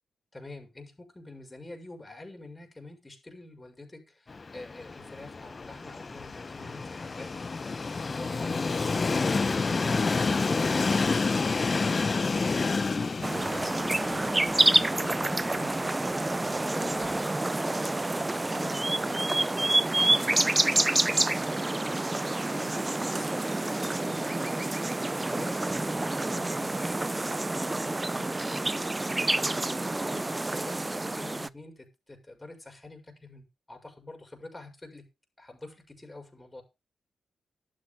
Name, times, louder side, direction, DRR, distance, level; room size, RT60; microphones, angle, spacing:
voice 1, 0.3-7.3 8.1-21.8 22.3-24.8 25.3-35.1 35.4-36.6, left 2 dB, 25° left, 6.0 m, -46 dB
Train, 4.3-17.3, left 4 dB, 45° left, 1.1 m, -30 dB
sound 1, 13.2-31.5, right 2 dB, 25° right, 0.6 m, -28 dB
12.0 x 7.7 x 5.4 m
supercardioid pair, 40°, 0 cm